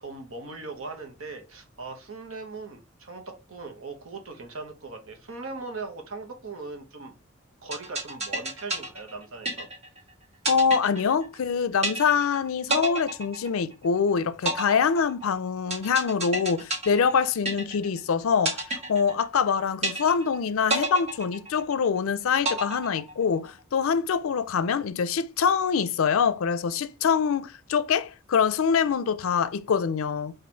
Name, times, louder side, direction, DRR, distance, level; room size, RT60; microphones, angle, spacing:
voice 1, 0.0-7.1 7.6-9.7, right 3 dB, 75° right, 1.1 m, -39 dB
sound 1, 7.7-10.0 10.4-11.5 11.8-12.4 12.7-14.0 14.5-18.0 18.5-19.5 19.8-20.4 20.7-22.0 22.4-23.5, right 2 dB, 30° right, 1.4 m, -30 dB
voice 2, 10.5-30.3, left 6 dB, 80° left, 0.4 m, -25 dB
4.2 x 2.6 x 4.5 m
head